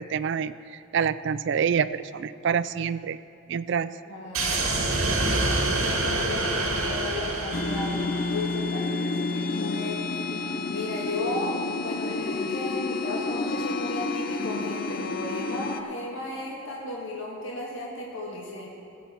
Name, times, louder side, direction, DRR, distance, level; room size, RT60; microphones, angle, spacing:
voice 1, 0.0-3.2 3.5-3.9, right 7 dB, 55° right, 15 dB, 0.3 m, -27 dB
voice 2, 4.1-4.8 5.4-10.2 10.7-18.7, left 1 dB, 60° left, -3 dB, 1.6 m, -34 dB
sound 1, 4.3-8.7, right 2 dB, 75° right, 1.9 m, -27 dB
sound 2, 7.5-15.8, left 3 dB, 45° left, 0.5 m, -30 dB
16.0 x 7.4 x 5.6 m, 2.7 s
head